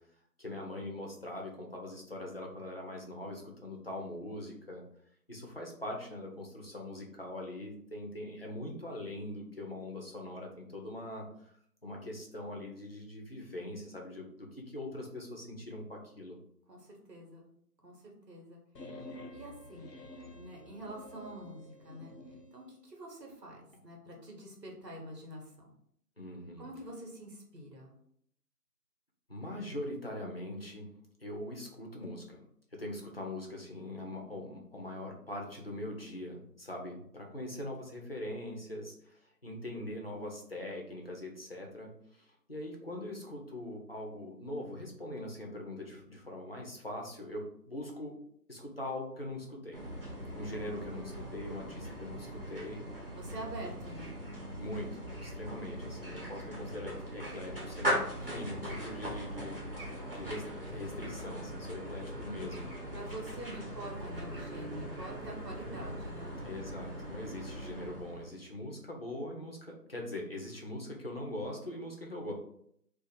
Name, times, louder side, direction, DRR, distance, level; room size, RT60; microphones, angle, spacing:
voice 1, 0.4-4.8 5.3-11.5 11.8-16.4 26.2-26.6 29.3-30.9 31.2-32.4 32.7-48.1 48.5-49.8 50.3-52.8 54.6-59.7 60.1-60.4 60.7-62.7 66.4-72.3, left 1 dB, 40° left, 0 dB, 0.5 m, -42 dB
voice 2, 16.7-17.4 17.8-19.9 20.3-25.7 26.6-27.9 50.5-51.9 53.2-54.1 62.9-66.4, right 1 dB, 85° right, 0 dB, 1.4 m, -47 dB
sound 1, 18.7-22.5, left 1 dB, 90° left, 0.7 m, -49 dB
sound 2, 49.7-68.3, equal, 35° right, 1.0 m, -40 dB
2.6 x 2.5 x 4.0 m, 0.70 s
figure-of-eight pair, 170°, 48 cm